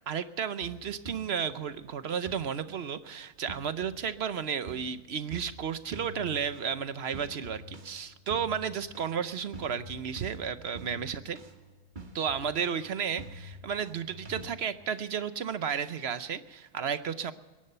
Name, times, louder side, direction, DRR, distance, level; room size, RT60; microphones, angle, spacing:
voice 1, 0.1-11.4 12.1-17.3, right 7 dB, 55° right, 12 dB, 0.7 m, -33 dB
sound 1, 0.6-1.7 2.3-2.9 3.5-4.3 4.7-14.5, right 2 dB, 35° right, 1.4 m, -47 dB
22.5 x 11.0 x 5.5 m, 1.3 s
omnidirectional pair, 1.6 m